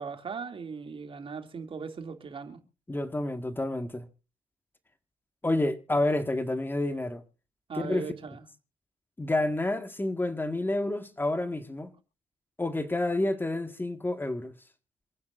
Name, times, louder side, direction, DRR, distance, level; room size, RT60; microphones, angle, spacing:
voice 1, 0.0-2.6 7.7-8.4, right 5 dB, 50° right, 2.6 m, -38 dB
voice 2, 2.9-4.1 5.4-7.2 7.7-8.0 9.2-11.9 12.6-14.5, left 2 dB, 15° left, 1.7 m, -29 dB
27.0 x 9.5 x 2.6 m
supercardioid pair, 65°, 12 cm